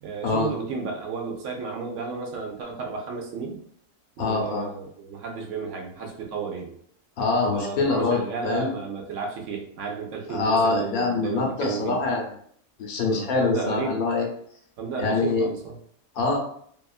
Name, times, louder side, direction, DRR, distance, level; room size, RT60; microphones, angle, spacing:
voice 1, 0.0-3.6 4.2-6.8 7.5-12.0 13.0-14.0 14.8-15.8, right 5 dB, 70° right, 1 dB, 0.8 m, -33 dB
voice 2, 4.2-4.7 7.2-8.7 10.3-12.2 12.8-14.3 15.0-15.5 16.2-16.4, left 3 dB, 85° left, 1 dB, 1.2 m, -24 dB
2.8 x 2.4 x 2.3 m, 0.64 s
omnidirectional pair, 1.5 m